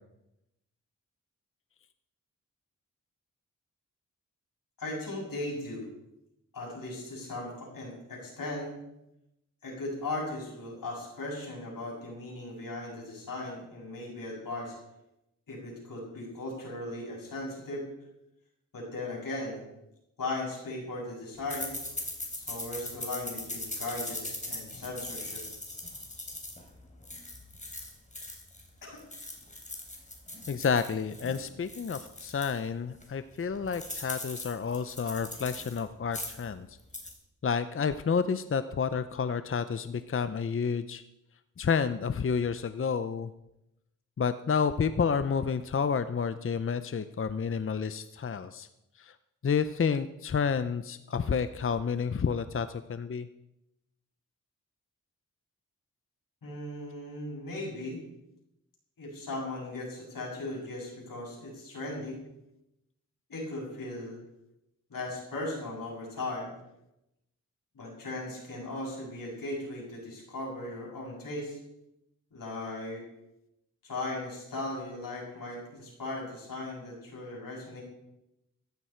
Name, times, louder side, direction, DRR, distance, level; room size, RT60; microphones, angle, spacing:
voice 1, 4.8-5.9 6.5-8.7 9.6-14.8 15.5-17.9 18.7-19.6 20.2-21.8 22.4-25.5 28.8-29.0 56.4-58.0 59.0-62.2 63.3-64.2 64.9-66.5 67.7-71.6 72.3-73.1 73.8-77.8, left 2 dB, 85° left, -3 dB, 6.9 m, -37 dB
sound 1, 21.5-28.7 29.0-32.6 33.0-33.1 33.4-35.8 36.1-36.5 36.8-37.1, left 2 dB, 20° left, 3.5 m, -40 dB
voice 2, 30.5-36.8 37.4-41.0 41.6-43.3 44.2-48.7 49.0-49.1 49.4-53.3, left 6 dB, 40° left, 12 dB, 0.6 m, -30 dB
15.0 x 14.0 x 4.5 m, 0.88 s
wide cardioid pair, 85°, 33 cm